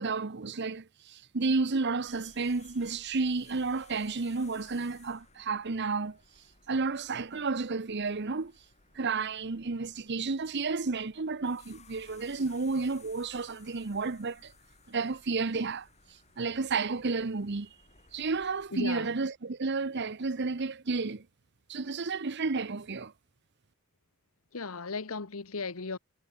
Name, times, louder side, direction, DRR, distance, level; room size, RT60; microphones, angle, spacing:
voice 1, 0.0-8.6 8.9-14.5 14.9-17.7 18.1-21.2 21.7-23.1, right 4 dB, 55° right, 0.9 m, -32 dB
sound 1, 2.1-18.7, left 5 dB, 30° left, 7.2 m, -60 dB
voice 2, 18.7-19.1 24.5-26.0, left 4 dB, 80° left, 1.2 m, -36 dB
head